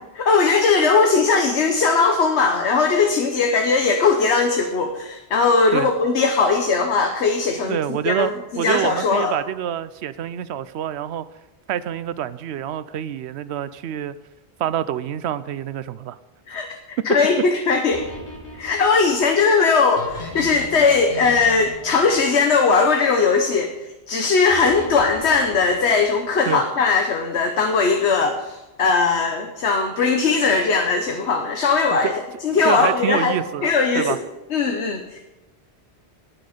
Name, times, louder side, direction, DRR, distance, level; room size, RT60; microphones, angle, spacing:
voice 1, 0.3-7.8 8.1-9.3 16.5-16.7 17.0-18.0 18.6-23.7 24.1-32.1 32.4-33.3 33.6-34.2 34.5-35.2, left 4 dB, 90° left, 4 dB, 1.3 m, -19 dB
voice 2, 7.7-11.3 11.7-14.1 14.6-16.2 17.1-17.2 26.5-26.6 31.9-32.1 32.6-34.2, right 10 dB, 80° right, 15 dB, 0.9 m, -26 dB
sound 1, 17.9-23.2 24.5-26.4, left 1 dB, 50° left, 2.1 m, -38 dB
18.0 x 6.1 x 5.1 m, 1.0 s
omnidirectional pair, 1.1 m